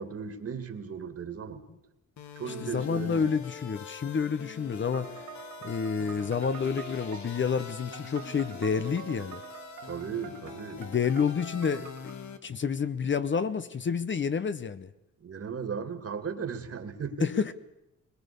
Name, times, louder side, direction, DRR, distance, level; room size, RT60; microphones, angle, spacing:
voice 1, 0.0-1.6 2.4-3.3 9.8-10.8 15.2-17.5, right 6 dB, 45° right, 2.4 m, -36 dB
sound 1, 2.2-12.4, left 6 dB, 60° left, 1.7 m, -44 dB
voice 2, 2.6-5.1 5.6-9.4 10.8-11.9 12.4-14.9 17.2-17.5, left 6 dB, 35° left, 0.9 m, -29 dB
sound 2, 4.9-12.1, right 9 dB, 80° right, 3.4 m, -46 dB
22.0 x 21.0 x 6.9 m
cardioid pair, 105°, 32 cm